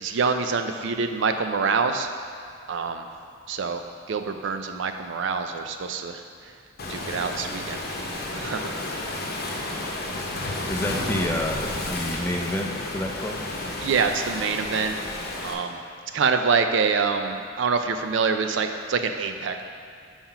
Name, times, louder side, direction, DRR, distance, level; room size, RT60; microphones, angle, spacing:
voice 1, 0.0-2.1 2.7-3.1 3.5-6.2 6.9-7.8 8.3-8.7 13.8-15.0 15.4-15.8 16.1-19.6, right 5 dB, 70° right, 7 dB, 0.4 m, -25 dB
Waves surf, 6.8-15.5, left 2 dB, 55° left, 0.8 m, -31 dB
voice 2, 10.7-13.4, left 1 dB, 10° left, 2 dB, 0.4 m, -29 dB
5.7 x 4.3 x 5.7 m, 2.2 s
head